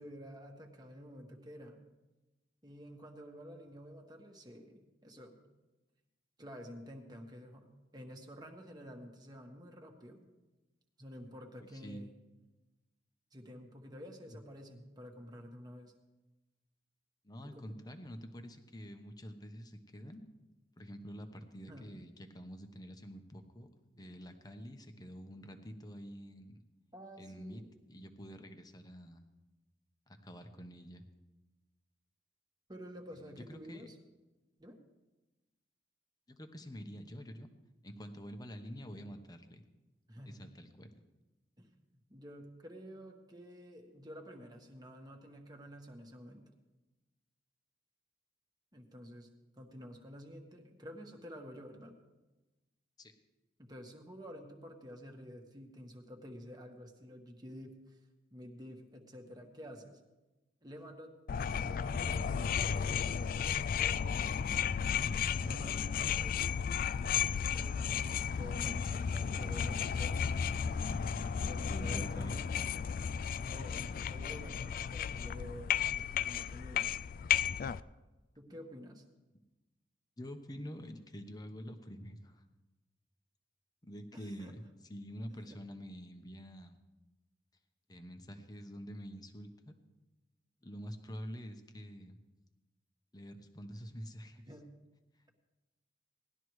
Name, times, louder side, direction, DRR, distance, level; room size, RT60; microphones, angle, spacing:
voice 1, 0.0-1.8 2.6-5.4 6.4-10.2 11.0-12.1 13.3-15.9 17.4-17.7 21.7-21.9 26.9-27.7 32.7-34.0 34.6-34.8 40.1-40.4 41.6-41.7 42.1-46.5 48.7-49.3 49.6-51.9 53.6-58.0 58.3-60.0 60.6-61.1 61.6-62.4 63.7-64.9 65.4-66.4 67.5-70.2 71.4-72.7 73.5-77.0 78.4-79.0 84.1-84.5 85.3-85.6 94.5-94.7, equal, 25° right, 3 dB, 1.4 m, -50 dB
voice 2, 11.6-12.0 14.3-14.4 17.2-20.2 20.8-23.7 23.9-26.6 27.2-27.6 27.9-29.2 30.1-31.0 33.1-33.9 36.3-37.5 37.8-39.6 40.3-40.9 53.0-53.1 71.7-72.4 78.5-78.6 80.2-82.4 83.8-86.8 87.9-89.8 90.6-92.2 93.1-94.4, equal, 20° left, 7 dB, 1.0 m, -47 dB
sound 1, 61.3-77.8, left 7 dB, 50° left, 0.3 m, -34 dB
18.5 x 12.0 x 3.2 m, 1.1 s
head